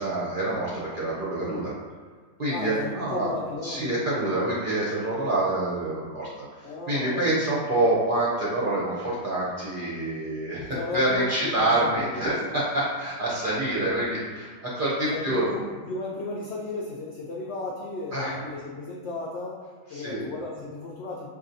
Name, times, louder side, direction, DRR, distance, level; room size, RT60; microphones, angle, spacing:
voice 1, 0.0-1.7 2.4-3.3 3.6-15.5 18.1-18.3 19.9-20.2, right 1 dB, 50° right, -7 dB, 0.6 m, -27 dB
voice 2, 2.5-4.2 6.6-7.4 10.6-12.3 15.1-19.6 19.9-21.3, left 2 dB, 75° left, -4 dB, 0.6 m, -34 dB
5.3 x 2.5 x 2.6 m, 1.5 s
omnidirectional pair, 1.7 m